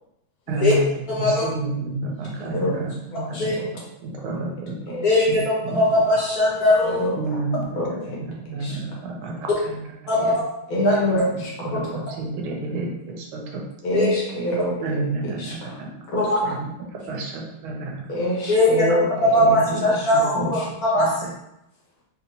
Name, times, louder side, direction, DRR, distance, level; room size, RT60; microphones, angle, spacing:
voice 1, 0.5-0.9 1.2-2.9 3.3-3.5 4.0-4.8 5.3-5.4 5.6-5.8 7.2-9.9 10.1-10.4 10.7-11.2 11.6-13.6 14.8-15.9 16.4-16.7 17.1-18.0 19.4-19.8 20.1-20.5 21.0-21.1, right 2 dB, 85° right, 0 dB, 1.5 m, -30 dB
voice 2, 1.1-1.4 3.4-3.5 5.0-7.0 10.1-10.3 10.8-10.9 11.7-11.8 13.9-14.1 16.2-16.4 18.5-18.8 19.3-20.6 20.9-21.1, left 1 dB, 60° left, -6 dB, 1.0 m, -19 dB
voice 3, 2.4-3.7 4.3-4.4 4.9-5.2 6.8-7.2 7.8-7.9 8.6-8.8 10.7-11.7 13.8-14.8 15.4-15.8 16.1-16.3 18.1-19.3 19.7-20.1 20.4-20.6, left 1 dB, 75° left, -4 dB, 1.8 m, -26 dB
3.9 x 2.8 x 2.6 m, 0.85 s
omnidirectional pair, 2.3 m